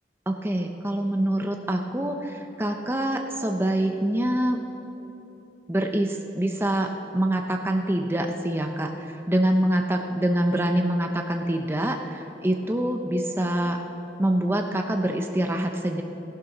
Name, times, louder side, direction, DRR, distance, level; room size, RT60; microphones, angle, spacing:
voice 1, 0.3-4.6 5.7-13.8 14.2-16.0, right 1 dB, 15° right, 3 dB, 0.7 m, -25 dB
16.5 x 10.5 x 5.9 m, 3.0 s
head